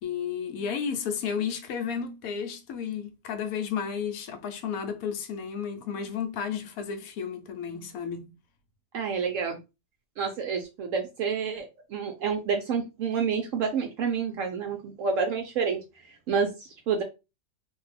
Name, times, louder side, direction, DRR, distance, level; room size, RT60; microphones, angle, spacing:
voice 1, 0.0-8.3, left 7 dB, 70° left, 1.0 m, -32 dB
voice 2, 8.9-9.6 10.2-11.6 11.9-17.0, right 6 dB, 70° right, 0.8 m, -29 dB
2.7 x 2.2 x 3.2 m
omnidirectional pair, 1.7 m